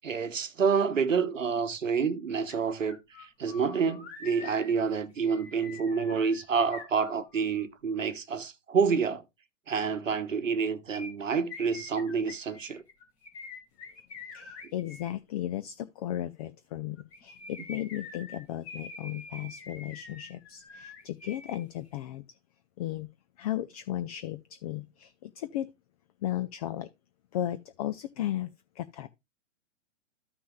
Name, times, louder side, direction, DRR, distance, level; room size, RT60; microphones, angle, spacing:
voice 1, 0.0-9.2 9.7-12.8, right 5 dB, 90° right, 0.9 m, -28 dB
sound 1, 2.5-2.6 2.9-7.6 10.9-15.1 17.0-21.6 21.9-22.0, left 4 dB, 60° left, 2.9 m, -46 dB
voice 2, 14.3-22.4 22.8-23.1 23.4-25.7 26.2-26.9 27.3-29.1, left 13 dB, 30° left, 0.4 m, -35 dB
13.5 x 6.1 x 2.3 m
hypercardioid pair, 120°, 37 cm